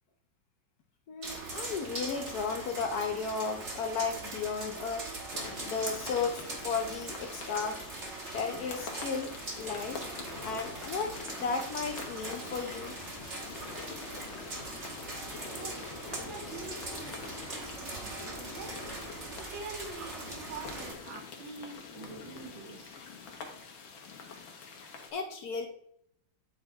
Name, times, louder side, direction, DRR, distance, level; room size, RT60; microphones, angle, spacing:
voice 1, 1.1-5.1 5.6-7.8 8.3-10.0 10.4-13.0 25.1-25.7, left 5 dB, 65° left, 5 dB, 1.0 m, -34 dB
sound 1, 1.2-20.9, right 2 dB, 40° right, 1.5 m, -41 dB
sound 2, 5.3-25.1, left 5 dB, 85° left, 1.8 m, -45 dB
voice 2, 15.6-17.2 17.5-18.7 19.5-23.0, right 4 dB, 75° right, 4 dB, 1.6 m, -45 dB
8.7 x 3.7 x 4.2 m, 0.72 s
omnidirectional pair, 2.1 m